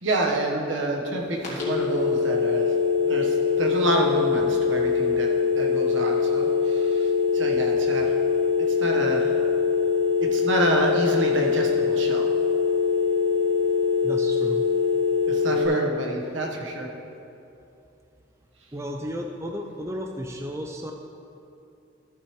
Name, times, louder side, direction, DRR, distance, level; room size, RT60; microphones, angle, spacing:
voice 1, 0.0-2.7 3.1-5.3 5.5-8.1 8.7-9.3 10.2-12.3 15.3-16.9, right 1 dB, 70° right, 0 dB, 1.2 m, -28 dB
sound 1, 1.4-15.7, left 5 dB, 35° left, 2.1 m, -23 dB
voice 2, 14.0-14.7 15.5-15.9 18.7-20.9, equal, 15° right, 2 dB, 0.4 m, -33 dB
13.5 x 6.7 x 3.1 m, 2.7 s
head